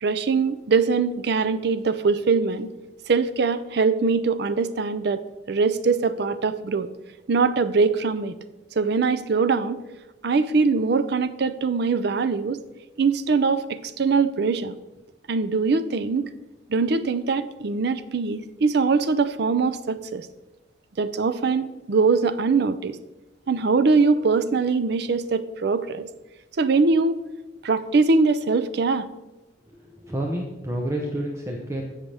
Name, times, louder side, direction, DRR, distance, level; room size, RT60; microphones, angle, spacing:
voice 1, 0.0-2.7 3.1-5.2 5.5-6.9 7.3-8.3 8.8-9.8 10.2-12.6 13.0-14.7 15.3-16.3 16.7-20.3 21.0-23.0 23.5-26.1 26.6-27.2 27.6-29.1, right 4 dB, 65° right, 13 dB, 0.5 m, -22 dB
voice 2, 29.7-31.8, right 1 dB, 15° right, 0 dB, 0.9 m, -29 dB
16.0 x 5.8 x 3.4 m, 1.1 s
head